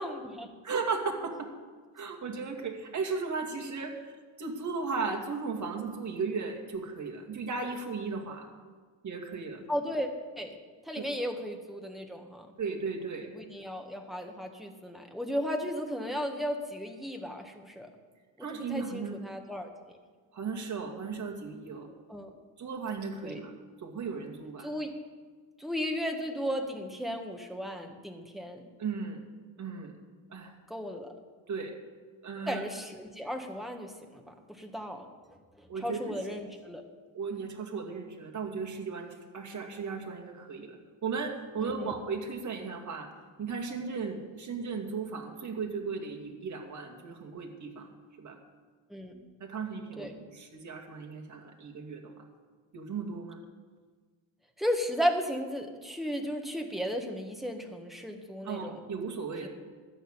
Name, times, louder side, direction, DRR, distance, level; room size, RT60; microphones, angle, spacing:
voice 1, 0.0-0.5 9.7-10.1 10.4-10.6 10.8-12.5 13.3-17.9 18.4-20.0 22.1-22.3 23.2-23.4 24.6-24.9 25.6-28.7 30.7-31.1 32.5-35.1 35.6-36.8 41.6-41.9 48.9-49.2 50.0-50.2 54.6-58.8 59.4-59.5, equal, ahead, 3 dB, 1.5 m, -35 dB
voice 2, 0.6-1.5 1.9-4.1 4.4-8.5 9.0-9.6 11.0-11.1 12.6-13.3 18.4-19.2 20.3-21.9 22.6-23.5 23.8-24.7 28.8-29.2 29.6-29.9 30.3-30.5 31.5-31.7 32.2-32.6 35.7-36.2 37.1-40.8 41.0-43.1 43.4-47.9 48.2-48.4 49.4-52.1 52.7-53.4 58.4-59.5, right 5 dB, 35° right, 2 dB, 2.1 m, -36 dB
12.5 x 6.4 x 8.8 m, 1.5 s
cardioid pair, 110°, 49 cm